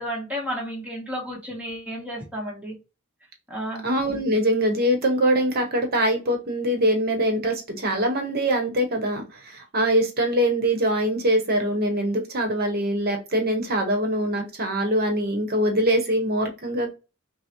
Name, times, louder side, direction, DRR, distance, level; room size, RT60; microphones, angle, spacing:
voice 1, 0.0-2.8 3.5-3.8, equal, 5° right, 1.0 m, -32 dB
voice 2, 3.8-16.9, right 1 dB, 45° right, 0.9 m, -23 dB
5.9 x 2.0 x 2.9 m
head